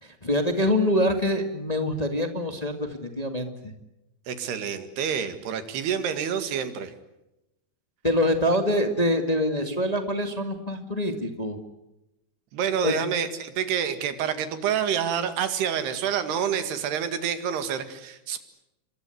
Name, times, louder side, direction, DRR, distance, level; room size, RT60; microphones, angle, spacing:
voice 1, 0.0-3.5 8.0-11.6 12.8-12.9, left 1 dB, 25° left, 6 dB, 0.8 m, -25 dB
voice 2, 4.3-6.9 12.5-18.4, right 8 dB, 80° right, 10 dB, 4.1 m, -28 dB
28.0 x 24.0 x 8.1 m, 0.91 s
omnidirectional pair, 4.6 m